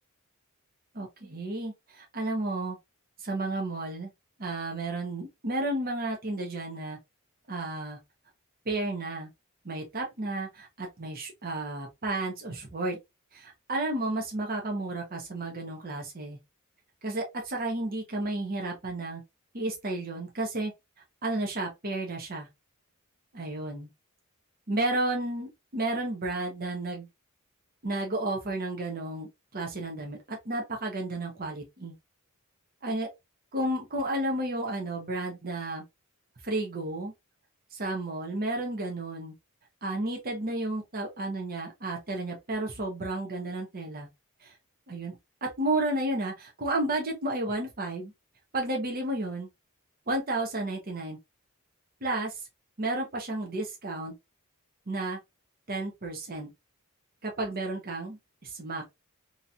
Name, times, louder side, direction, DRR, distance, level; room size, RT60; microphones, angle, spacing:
voice 1, 0.9-2.8 3.2-4.1 4.4-7.0 7.5-8.0 8.7-9.3 9.6-13.0 13.3-16.4 17.0-19.2 19.5-20.7 21.2-22.5 23.3-23.9 24.7-27.1 27.8-31.9 32.8-33.1 33.5-35.8 36.4-37.1 37.7-39.3 39.8-44.1 44.4-44.5 44.9-45.2 45.4-48.1 48.5-49.5 50.1-51.2 52.0-52.3 52.8-54.1 54.9-55.2 55.7-56.5 57.2-58.8, right 2 dB, 40° right, 0.8 m, -32 dB
2.8 x 2.7 x 2.3 m
head